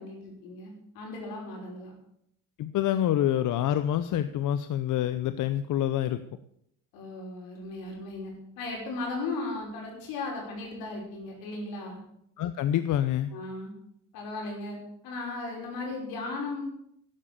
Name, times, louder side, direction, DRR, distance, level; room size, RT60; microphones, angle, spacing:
voice 1, 0.0-1.9 6.9-12.0 13.3-13.7 14.1-14.8 15.0-16.6, left 3 dB, 85° left, 0 dB, 5.6 m, -36 dB
voice 2, 2.6-6.2 12.4-13.3, left 11 dB, 60° left, 12 dB, 0.8 m, -27 dB
12.5 x 11.0 x 7.0 m, 0.73 s
cardioid pair, 100°, 34 cm